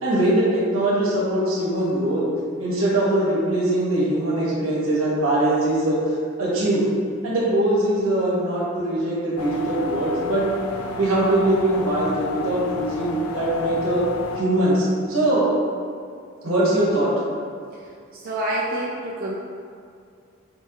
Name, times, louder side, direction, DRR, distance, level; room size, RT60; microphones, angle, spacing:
voice 1, 0.0-2.2 2.6-6.0 6.4-6.9 7.2-10.5 11.0-14.0 14.4-15.5 16.4-17.1, right 1 dB, 80° right, -6 dB, 0.9 m, -21 dB
sound 1, 9.4-14.4, left 4 dB, 90° left, 0.3 m, -31 dB
voice 2, 18.1-19.3, right 1 dB, 45° right, -5 dB, 0.3 m, -27 dB
4.3 x 2.8 x 2.3 m, 2.3 s
head